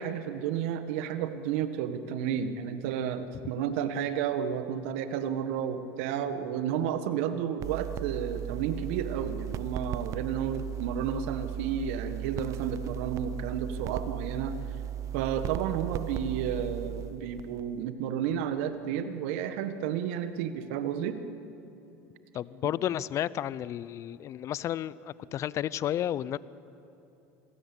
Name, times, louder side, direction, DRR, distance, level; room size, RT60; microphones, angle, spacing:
voice 1, 0.0-14.6 15.1-21.2, right 8 dB, 75° right, 10 dB, 1.5 m, -32 dB
sound 1, 7.6-17.8, right 10 dB, 50° right, 0.7 m, -36 dB
voice 2, 22.3-26.4, left 11 dB, 45° left, 19 dB, 0.6 m, -32 dB
26.5 x 17.0 x 8.5 m, 2.9 s
supercardioid pair, 95°, 7 cm